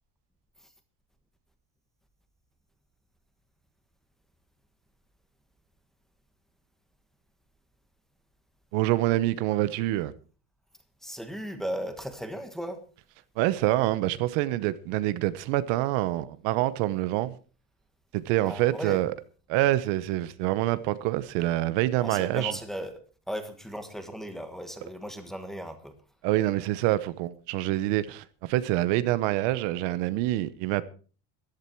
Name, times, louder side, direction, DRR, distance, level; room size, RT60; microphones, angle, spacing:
voice 1, 8.7-10.1 13.4-17.3 18.1-19.1 19.5-22.6 26.2-30.8, right 16 dB, 65° right, 1.0 m, -26 dB
voice 2, 11.0-12.8 18.4-19.0 22.0-22.9 23.3-25.9, equal, ahead, 1.4 m, -36 dB
15.0 x 12.0 x 4.5 m
cardioid pair, 180°, 45 cm